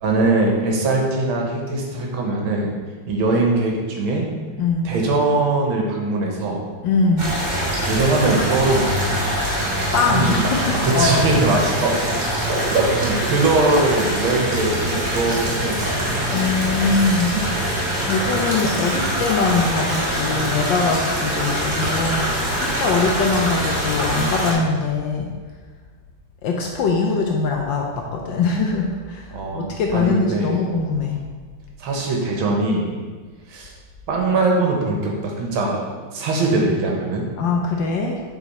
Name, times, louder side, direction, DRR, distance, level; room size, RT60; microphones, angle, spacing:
voice 1, 0.0-2.7 3.1-4.3 4.8-6.6 7.8-9.2 10.1-11.9 12.4-15.9 17.3-17.5 24.1-24.4 29.3-30.6 31.8-32.9 33.5-33.7 34.1-35.9 36.1-37.3, right 2 dB, 70° right, 0 dB, 1.8 m, -21 dB
voice 2, 4.6-4.9 6.8-7.4 9.9-11.3 16.3-17.4 18.0-25.3 26.4-31.2 37.4-38.2, left 4 dB, 70° left, 1 dB, 1.2 m, -22 dB
sound 1, 7.2-24.5, equal, 25° right, 1.2 m, -23 dB
7.0 x 4.1 x 4.1 m, 1.5 s
omnidirectional pair, 2.4 m